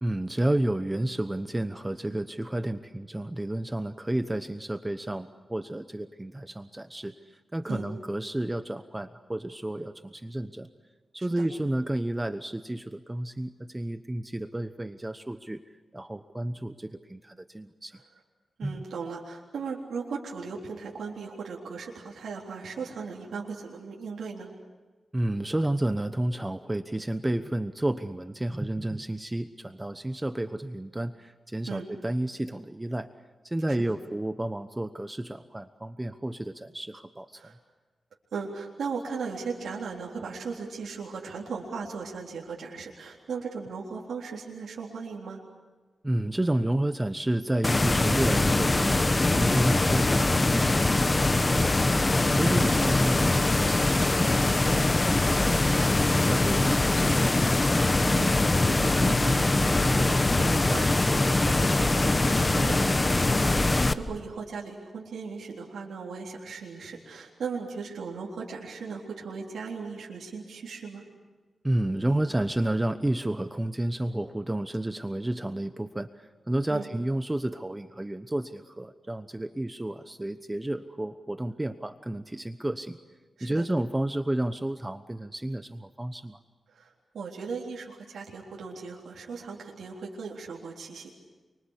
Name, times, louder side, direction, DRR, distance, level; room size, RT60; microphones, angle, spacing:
voice 1, 0.0-10.7 11.1-15.6 15.9-18.0 18.6-18.8 25.1-33.1 33.4-37.4 46.0-51.9 52.3-57.4 71.6-83.0 83.4-86.4, right 1 dB, 15° right, 10 dB, 1.0 m, -31 dB
voice 2, 18.6-24.5 31.7-31.9 33.7-33.8 37.4-37.6 38.3-45.4 52.3-52.6 54.7-55.0 57.8-71.0 76.7-76.9 83.4-83.6 86.7-91.1, right 5 dB, 90° right, -2 dB, 3.8 m, -38 dB
sound 1, 47.6-63.9, left 2 dB, 25° left, 1.2 m, -23 dB
29.0 x 25.0 x 8.3 m, 1.3 s
cardioid pair, 85°, 0 cm